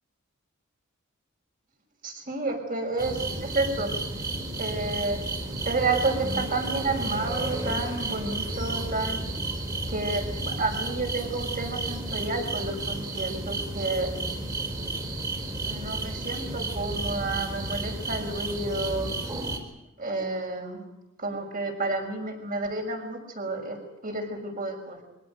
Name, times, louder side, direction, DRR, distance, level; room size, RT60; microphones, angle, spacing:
voice 1, 2.0-3.9 4.6-5.2 5.6-9.2 9.9-14.1 15.6-19.1 20.0-20.8 21.2-23.8 24.0-25.0, right 3 dB, 40° right, 3 dB, 6.1 m, -30 dB
sound 1, 3.0-19.6, right 2 dB, 20° right, 4.1 m, -32 dB
24.5 x 17.5 x 9.4 m, 0.99 s
head